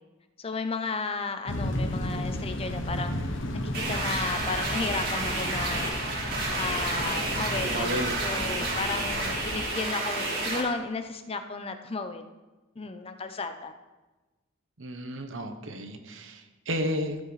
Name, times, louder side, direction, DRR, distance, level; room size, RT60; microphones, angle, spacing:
voice 1, 0.4-3.1 3.6-6.0 6.5-12.2 12.8-13.7, left 4 dB, 30° left, 8 dB, 0.6 m, -34 dB
sound 1, 1.5-9.7, left 1 dB, 70° left, 1.0 m, -34 dB
sound 2, 3.7-10.6, right 2 dB, 55° right, 2.0 m, -30 dB
voice 2, 7.6-8.9 14.8-17.2, equal, 75° right, 7 dB, 1.0 m, -33 dB
14.0 x 7.5 x 3.2 m, 1.2 s
head